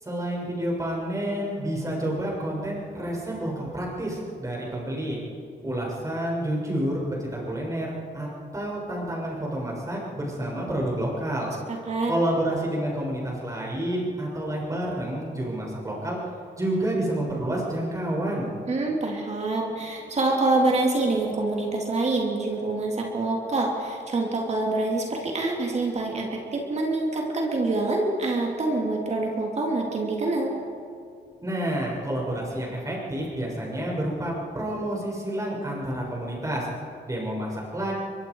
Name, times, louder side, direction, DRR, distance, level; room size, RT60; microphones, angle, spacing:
voice 1, 0.0-5.2 5.6-8.3 8.5-11.5 12.1-16.2 16.6-18.5 31.4-36.7 37.0-37.9, right 1 dB, 15° right, -3 dB, 6.7 m, -29 dB
voice 2, 11.7-12.1 18.7-30.5, right 2 dB, 35° right, 0 dB, 3.2 m, -26 dB
23.0 x 23.0 x 4.9 m, 2.4 s
cardioid pair, 120°, 19 cm